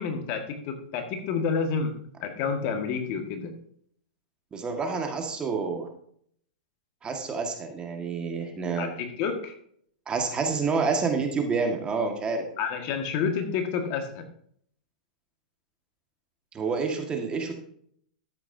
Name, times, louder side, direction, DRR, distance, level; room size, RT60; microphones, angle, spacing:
voice 1, 0.0-1.9 2.2-3.5 8.8-9.5 12.6-14.3, left 6 dB, 45° left, 5 dB, 1.7 m, -29 dB
voice 2, 4.5-5.9 7.0-8.9 10.1-12.4 16.5-17.5, right 4 dB, 20° right, 3 dB, 1.7 m, -28 dB
12.5 x 8.8 x 2.7 m, 0.65 s
hypercardioid pair, 125°, 5 cm